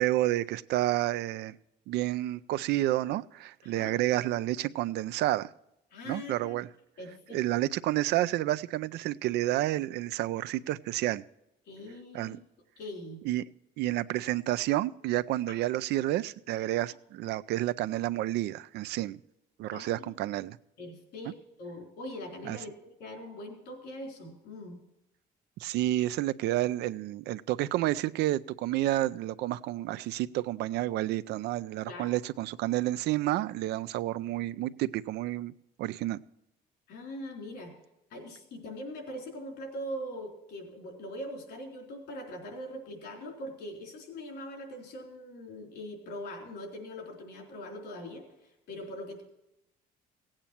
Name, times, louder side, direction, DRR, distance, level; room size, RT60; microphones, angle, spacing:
voice 1, 0.0-1.6 1.9-5.5 6.0-6.7 7.3-11.2 12.1-12.4 13.2-13.4 13.8-19.2 19.6-20.6 22.4-22.6 25.6-35.5 35.8-36.2, right 15 dB, 80° right, 15 dB, 0.5 m, -30 dB
voice 2, 3.6-3.9 5.9-6.5 7.0-7.4 11.7-12.4 12.8-13.2 15.5-15.6 19.7-20.1 20.8-24.8 31.9-32.1 36.9-37.7 38.1-48.3 48.7-49.2, left 1 dB, 75° left, 1 dB, 3.8 m, -42 dB
16.5 x 8.9 x 4.4 m, 0.88 s
cardioid pair, 110°, 17 cm